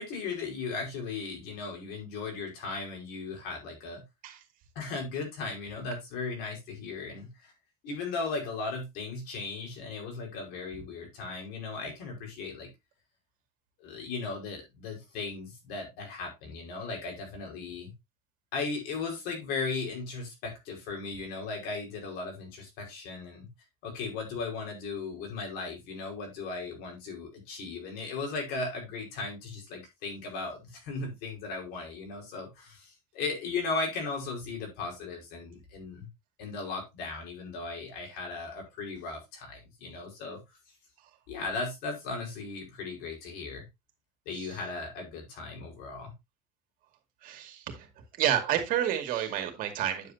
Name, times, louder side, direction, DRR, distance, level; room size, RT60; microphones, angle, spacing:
voice 1, 0.0-4.0 4.7-7.5 7.8-12.7 13.8-17.9 18.5-23.5 23.8-36.1 36.4-40.4 41.3-43.6 44.2-46.1, left 4 dB, 70° left, 5.0 m, -37 dB
voice 2, 47.2-47.9 48.2-50.1, right 10 dB, 55° right, 2.3 m, -30 dB
9.5 x 7.9 x 2.8 m
cardioid pair, 150°, 17 cm